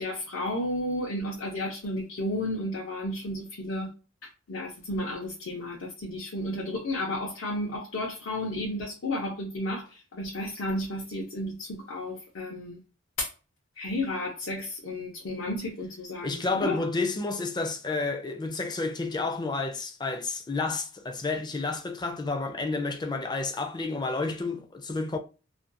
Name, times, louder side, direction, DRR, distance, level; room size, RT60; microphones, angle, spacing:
voice 1, 0.0-3.9 4.5-12.8 13.2-13.3 13.8-16.8, left 1 dB, 85° left, 0.7 m, -32 dB
voice 2, 16.2-25.2, left 3 dB, 20° left, 0.4 m, -30 dB
2.5 x 2.2 x 2.5 m
head